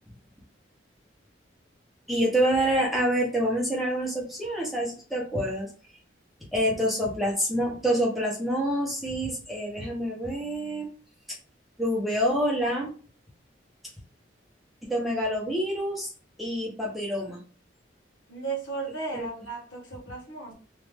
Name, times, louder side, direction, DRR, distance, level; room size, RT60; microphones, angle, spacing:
voice 1, 2.1-5.7 6.5-10.9 11.8-12.9 14.8-16.1 16.4-17.4 19.1-19.3, equal, ahead, -4 dB, 0.9 m, -27 dB
voice 2, 18.3-20.5, right 4 dB, 90° left, -2 dB, 1.5 m, -35 dB
3.1 x 2.6 x 3.4 m, 0.39 s
head